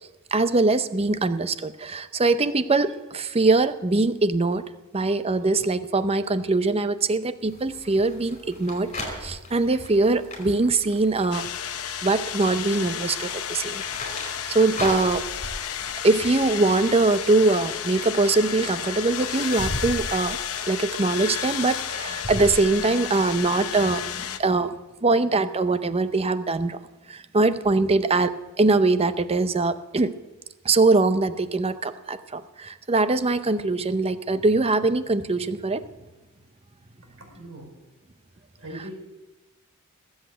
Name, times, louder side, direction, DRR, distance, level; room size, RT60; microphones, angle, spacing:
voice 1, 0.3-4.6 4.9-11.5 12.0-13.8 14.2-15.2 16.0-20.4 20.7-24.7 25.0-26.8 27.1-30.2 30.6-35.8 38.7-38.8, right 3 dB, 25° right, 12 dB, 0.6 m, -22 dB
sound 1, 7.4-24.3, left 1 dB, 35° left, 5.0 m, -39 dB
sound 2, 11.3-24.4, left 9 dB, 70° left, 0.9 m, -32 dB
voice 2, 37.2-37.7 38.6-38.9, right 1 dB, 65° right, 1 dB, 5.1 m, -40 dB
19.5 x 8.0 x 7.9 m, 1.1 s
head